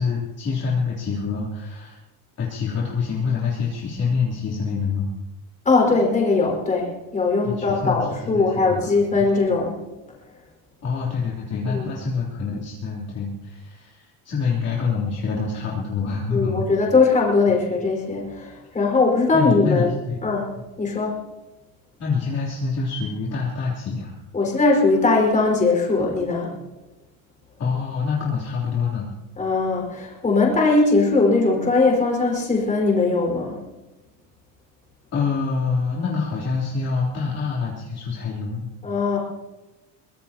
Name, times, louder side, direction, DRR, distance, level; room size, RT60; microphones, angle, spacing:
voice 1, 0.0-2.0 2.4-5.1 7.4-8.9 9.2-9.3 10.8-16.6 19.3-20.3 22.0-24.1 27.6-29.1 35.1-38.7, left 5 dB, 35° left, -6 dB, 3.4 m, -26 dB
voice 2, 5.6-9.8 11.7-11.9 16.3-19.9 20.2-20.5 20.8-21.2 24.3-26.5 29.4-33.6 38.8-39.2, left 3 dB, 15° left, -1 dB, 5.0 m, -20 dB
23.5 x 20.5 x 2.9 m, 1.1 s
cardioid pair, 155°, 43 cm